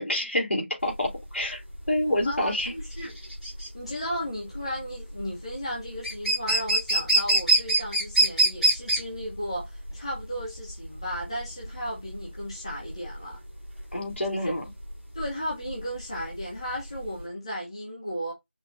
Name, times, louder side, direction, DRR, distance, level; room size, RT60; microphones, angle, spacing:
voice 1, 0.0-1.6 1.9-2.7 13.9-14.6, left 1 dB, 70° left, 3.0 m, -27 dB
sound 1, 0.9-17.2, right 2 dB, ahead, 0.6 m, -26 dB
voice 2, 2.2-3.2 3.7-13.4 15.1-18.3, equal, 30° left, 1.8 m, -35 dB
5.5 x 3.7 x 2.5 m
figure-of-eight pair, 175°, 7 cm